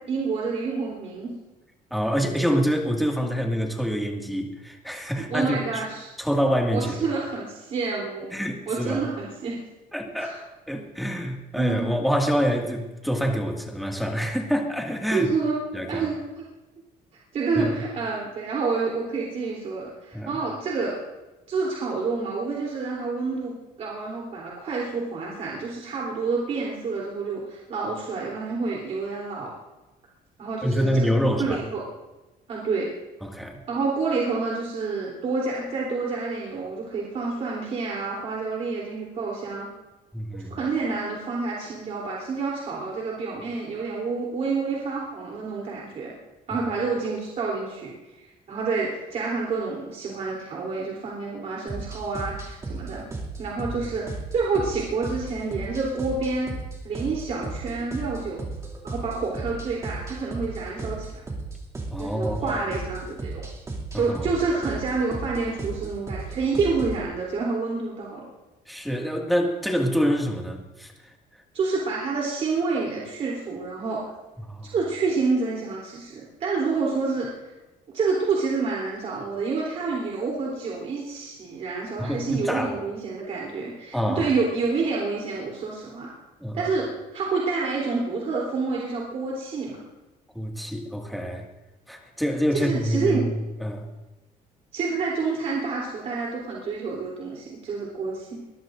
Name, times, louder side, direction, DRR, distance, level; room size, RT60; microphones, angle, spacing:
voice 1, 0.1-1.3 5.3-6.1 6.7-8.3 8.7-9.6 10.2-10.4 11.6-11.9 15.1-15.6 15.9-16.5 17.3-20.9 21.5-23.5 23.8-29.5 30.4-31.8 32.5-32.9 33.7-39.7 40.5-46.1 46.5-53.0 53.4-56.5 56.8-58.4 58.8-61.2 62.0-63.4 63.9-68.2 71.5-74.1 74.6-77.3 77.9-86.1 86.5-89.8 92.5-93.2 94.7-98.4, right 4 dB, 45° right, -3 dB, 3.4 m, -28 dB
voice 2, 1.9-5.6 6.2-7.0 8.3-9.0 9.9-10.4 10.7-15.3 15.7-16.1 17.6-17.7 20.1-20.3 30.6-31.6 33.2-33.6 40.1-40.6 53.6-53.7 61.9-62.6 63.9-64.3 68.7-71.1 74.4-74.7 82.0-82.7 83.9-84.3 86.4-86.7 90.3-91.5 91.9-93.9, equal, ahead, 0 dB, 2.1 m, -26 dB
sound 1, 51.7-67.0, right 3 dB, 20° right, 2.6 m, -35 dB
23.5 x 20.0 x 2.6 m, 1.1 s
cardioid pair, 175°, 16 cm